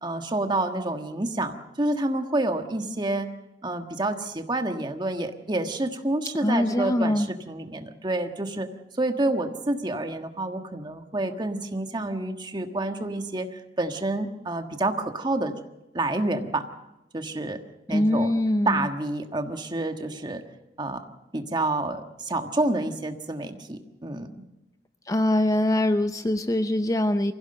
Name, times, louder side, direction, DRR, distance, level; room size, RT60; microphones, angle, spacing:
voice 1, 0.0-3.3 3.6-8.7 9.0-15.5 15.9-16.7 17.1-17.6 17.9-18.3 18.6-20.4 20.8-21.0 21.3-24.3, right 2 dB, 25° right, 6 dB, 1.4 m, -28 dB
voice 2, 6.4-7.3 17.9-18.8 25.1-27.3, left 1 dB, 20° left, 10 dB, 0.6 m, -23 dB
24.5 x 16.0 x 6.7 m, 0.96 s
head